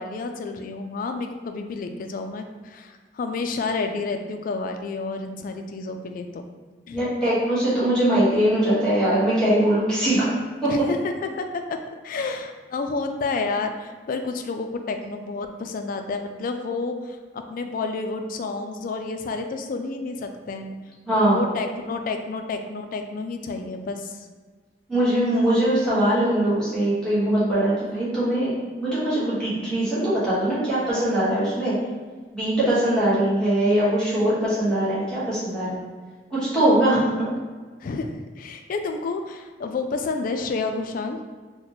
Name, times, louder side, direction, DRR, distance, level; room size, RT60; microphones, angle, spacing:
voice 1, 0.0-6.4 6.9-7.1 10.7-11.0 11.2-20.8 21.1-24.2 37.8-41.2, left 3 dB, 50° left, 6 dB, 0.3 m, -30 dB
voice 2, 6.9-10.3 10.6-10.7 21.1-21.4 24.9-28.5 28.8-31.7 32.3-35.8 36.3-37.0, right 1 dB, 5° left, -11 dB, 1.3 m, -21 dB
4.0 x 2.2 x 3.0 m, 1.4 s
head